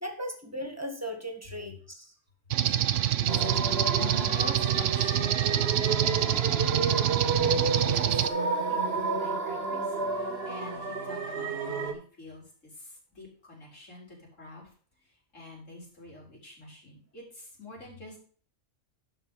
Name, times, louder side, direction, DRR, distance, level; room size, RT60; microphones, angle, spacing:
voice 1, 0.0-2.1, equal, 10° right, 4 dB, 1.5 m, -37 dB
sound 1, 2.5-8.3, right 11 dB, 75° right, 0.9 m, -26 dB
voice 2, 2.7-8.0 8.4-14.7 15.0-18.2, left 2 dB, 80° left, -4 dB, 4.7 m, -45 dB
sound 2, 3.3-11.9, right 4 dB, 55° right, 1.5 m, -31 dB
11.5 x 4.6 x 5.4 m, 0.44 s
omnidirectional pair, 1.3 m